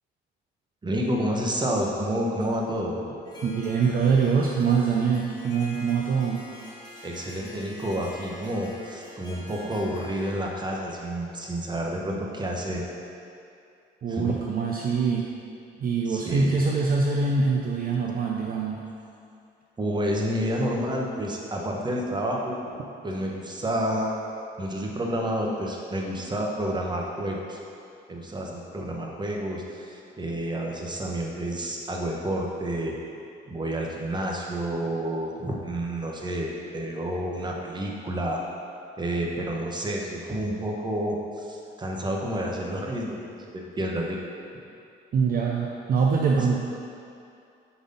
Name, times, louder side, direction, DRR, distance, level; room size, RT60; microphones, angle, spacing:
voice 1, 0.8-3.2 7.0-12.9 14.1-14.4 16.1-16.5 19.8-22.6 23.0-24.1 24.6-27.6 28.1-32.9 33.5-38.4 39.0-44.2, right 1 dB, 20° right, -1 dB, 0.9 m, -29 dB
Harp, 3.3-12.0, left 1 dB, 20° left, 1.0 m, -46 dB
voice 2, 3.4-6.5 14.0-15.3 15.8-18.8 45.1-46.6, right 5 dB, 45° right, -1 dB, 0.5 m, -24 dB
4.9 x 4.1 x 5.3 m, 2.5 s
cardioid pair, 90°, 20 cm